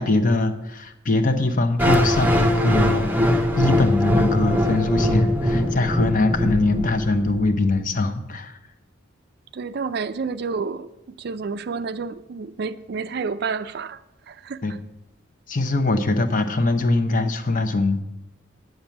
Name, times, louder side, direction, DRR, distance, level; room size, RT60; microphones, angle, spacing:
voice 1, 0.0-8.6 14.6-14.7 15.5-18.0, left 2 dB, 40° left, 0.8 m, -22 dB
sound 1, 1.8-7.8, equal, 10° right, 0.7 m, -21 dB
voice 2, 9.5-10.9 11.2-14.0 14.3-14.6, right 5 dB, 55° right, 0.4 m, -29 dB
8.6 x 7.9 x 5.9 m
head